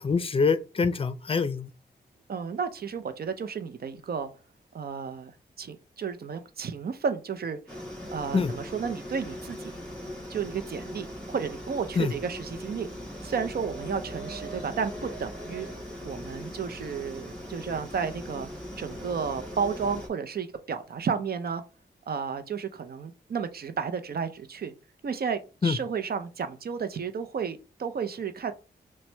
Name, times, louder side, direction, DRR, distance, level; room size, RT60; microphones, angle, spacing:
voice 1, 0.0-1.7 8.3-8.5 12.0-12.1 25.6-25.8, left 5 dB, 35° left, 0.5 m, -25 dB
voice 2, 2.3-4.3 4.7-5.3 5.6-7.8 8.1-9.7 10.3-12.9 13.2-15.7 16.0-18.5 18.8-21.6 22.1-24.7 25.0-28.5, right 6 dB, 65° right, 0.6 m, -32 dB
sound 1, 7.7-20.1, equal, 5° left, 2.0 m, -40 dB
5.8 x 2.2 x 3.3 m
cardioid pair, 65°, 17 cm